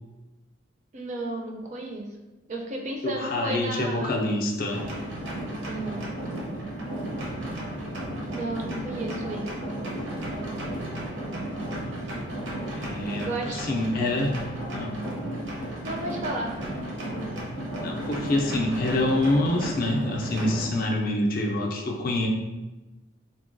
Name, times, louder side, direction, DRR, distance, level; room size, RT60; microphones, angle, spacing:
voice 1, 0.9-2.1 2.5-4.2 5.7-6.1 8.3-9.5 13.2-13.7 15.8-16.5, right 2 dB, 40° right, 1 dB, 0.4 m, -33 dB
voice 2, 3.0-4.8 12.7-14.4 14.7-15.0 17.8-22.3, left 1 dB, 45° left, 0 dB, 0.4 m, -26 dB
sound 1, 4.7-20.7, right 1 dB, 75° right, 0.7 m, -34 dB
3.8 x 2.1 x 2.5 m, 1.1 s
head